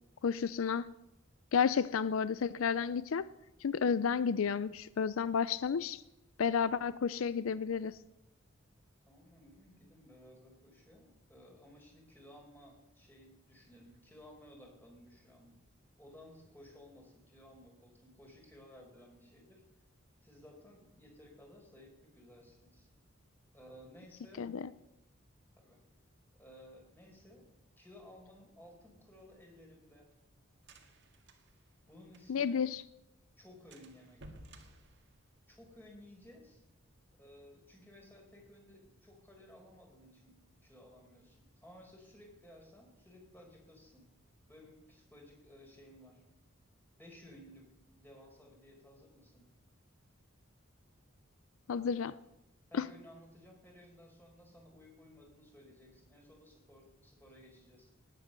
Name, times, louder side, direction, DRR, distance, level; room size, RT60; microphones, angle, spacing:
voice 1, 0.2-0.9 1.5-3.3 3.6-6.0 6.4-8.0 24.4-24.7 32.3-32.8 51.7-52.2 52.7-52.8, left 6 dB, 75° left, 17 dB, 0.4 m, -31 dB
voice 2, 9.1-15.6 16.0-19.6 20.2-22.9 23.5-24.5 25.6-25.8 26.4-27.5 27.8-30.1 31.9-32.6 33.4-34.3 35.5-36.6 37.1-44.1 44.5-46.2 47.0-49.5 52.7-57.9, left 1 dB, 10° left, 0 dB, 4.5 m, -57 dB
sound 1, 29.2-32.6 32.9-33.0 33.3-33.4 33.7-35.8, right 1 dB, 60° right, 1.8 m, -57 dB
18.5 x 9.3 x 6.6 m, 0.89 s
head